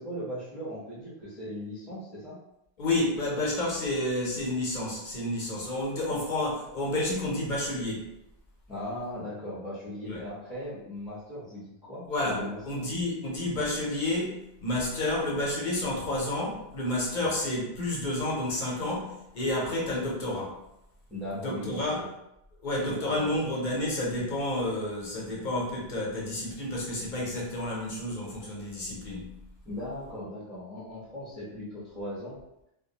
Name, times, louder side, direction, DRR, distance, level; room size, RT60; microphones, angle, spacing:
voice 1, 0.0-2.4 6.1-6.2 8.7-12.8 17.1-17.3 21.1-22.1 22.9-23.3 29.6-32.4, equal, 5° right, -12 dB, 0.6 m, -38 dB
voice 2, 2.8-8.1 10.1-10.2 12.1-20.6 21.4-22.1 22.6-29.4, left 1 dB, 50° left, -3 dB, 0.7 m, -30 dB
2.3 x 2.1 x 2.7 m, 0.84 s
omnidirectional pair, 1.1 m